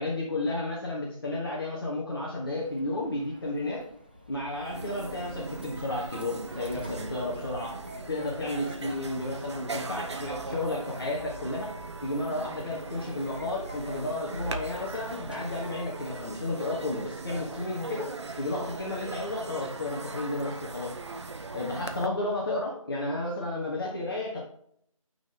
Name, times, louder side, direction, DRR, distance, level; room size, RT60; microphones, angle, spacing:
voice 1, 0.0-3.8 4.3-7.7 8.1-11.7 12.0-18.1 18.4-20.9 21.5-24.4, left 2 dB, 40° left, -3 dB, 1.4 m, -32 dB
Sliding door, 2.5-22.1, left 1 dB, 15° right, 0.4 m, -49 dB
sound 1, 4.3-4.4 4.6-22.1, right 3 dB, 55° right, 0.7 m, -39 dB
8.7 x 4.0 x 3.8 m, 0.66 s
figure-of-eight pair, 165°, 18 cm